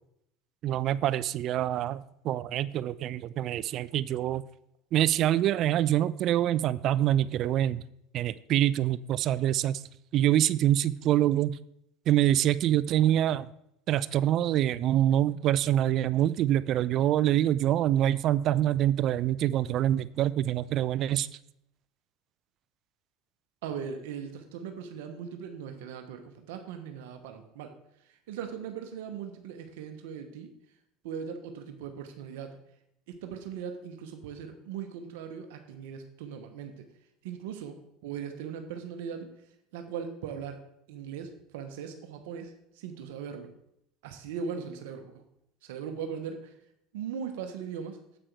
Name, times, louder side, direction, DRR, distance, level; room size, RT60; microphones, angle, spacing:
voice 1, 0.6-4.4 4.9-7.8 8.1-9.8 10.1-11.6 12.1-13.5 13.9-21.3, right 12 dB, 50° right, 17 dB, 0.3 m, -25 dB
voice 2, 23.6-30.5 31.0-32.6 33.1-36.9 37.2-39.3 39.7-43.5 44.0-45.2 45.6-46.6 46.9-48.0, right 7 dB, 75° right, 6 dB, 0.9 m, -39 dB
7.9 x 6.2 x 4.6 m, 0.78 s
hypercardioid pair, 85°, 0 cm